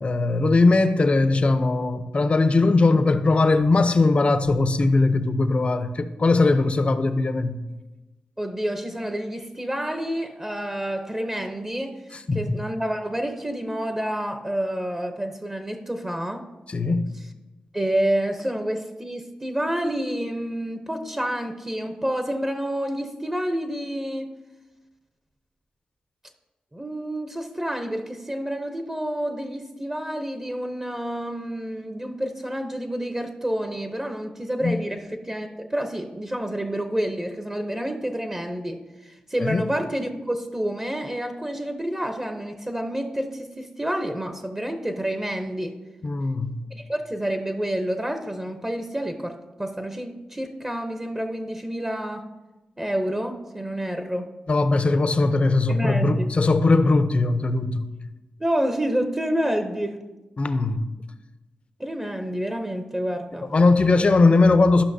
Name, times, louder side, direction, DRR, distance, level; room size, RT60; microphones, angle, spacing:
voice 1, 0.0-7.6 12.1-12.6 16.7-17.1 34.6-34.7 39.4-39.7 46.0-46.6 54.5-57.9 60.4-60.9 63.5-64.8, left 3 dB, 45° left, 0.6 m, -20 dB
voice 2, 8.4-12.0 12.3-16.4 17.7-24.3 26.7-45.8 46.7-52.3 52.8-54.3 55.7-56.3 58.4-60.0 61.8-63.5, right 1 dB, 20° right, 0.8 m, -29 dB
13.0 x 5.7 x 2.7 m
cardioid pair, 60°, 3 cm